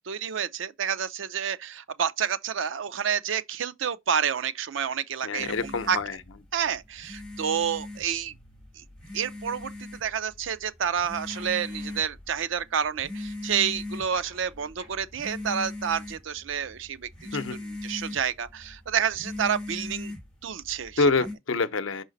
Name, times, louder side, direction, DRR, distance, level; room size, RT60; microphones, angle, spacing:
voice 1, 0.1-6.0 6.5-8.3 8.8-8.9 9.1-20.1 20.4-21.1, right 8 dB, 80° right, 0.5 m, -29 dB
voice 2, 5.2-6.2 17.3-17.6 21.0-22.0, left 3 dB, 85° left, 0.6 m, -26 dB
sound 1, 5.4-21.3, left 2 dB, 5° left, 2.8 m, -40 dB
sound 2, 10.6-10.7 10.9-11.0 11.3-12.6 13.0-13.3 13.8-15.1, equal, 25° right, 4.1 m, -54 dB
5.8 x 4.3 x 3.9 m
head